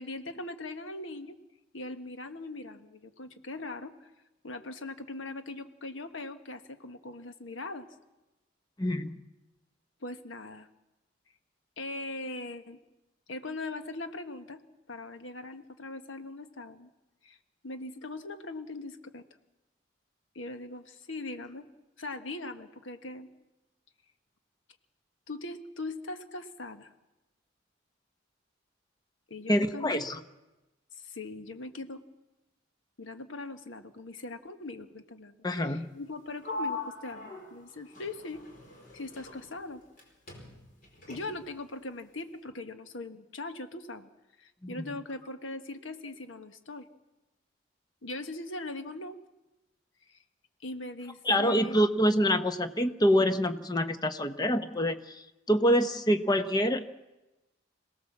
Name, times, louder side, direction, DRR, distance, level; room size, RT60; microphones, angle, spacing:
voice 1, 0.0-1.4 1.7-4.1 4.4-7.9 10.0-10.7 11.8-12.8 13.3-14.6 14.9-16.9 17.2-17.4 17.6-19.2 20.3-21.7 22.0-23.3 25.3-26.9 29.3-29.9 31.0-32.0 33.0-35.4 35.6-38.4 38.9-39.8 41.1-44.1 44.4-46.9 48.0-49.2 50.1-50.2 50.6-51.8, left 2 dB, 90° left, 8 dB, 1.5 m, -40 dB
voice 2, 8.8-9.2 29.5-30.2 35.4-35.9 44.6-44.9 51.2-56.8, equal, 20° left, 9 dB, 1.0 m, -26 dB
Sliding door, 36.4-40.0 40.3-41.6, left 2 dB, 45° left, 4.9 m, -41 dB
26.0 x 18.0 x 7.4 m, 1.0 s
head